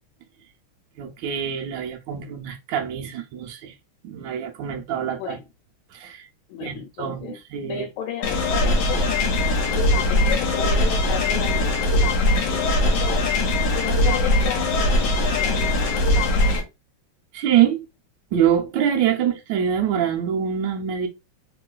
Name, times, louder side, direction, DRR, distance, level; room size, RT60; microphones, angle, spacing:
voice 1, 1.0-3.7 4.0-5.4 5.9-6.3 6.6-7.8 17.3-17.8 18.3-21.1, right 9 dB, 75° right, 1.1 m, -24 dB
voice 2, 5.0-5.4 6.5-7.4 7.7-9.2 9.7-13.2 13.7-15.8, left 9 dB, 85° left, 1.5 m, -33 dB
sound 1, 8.2-16.6, left 1 dB, 70° left, 1.2 m, -21 dB
3.0 x 2.9 x 2.3 m
omnidirectional pair, 2.3 m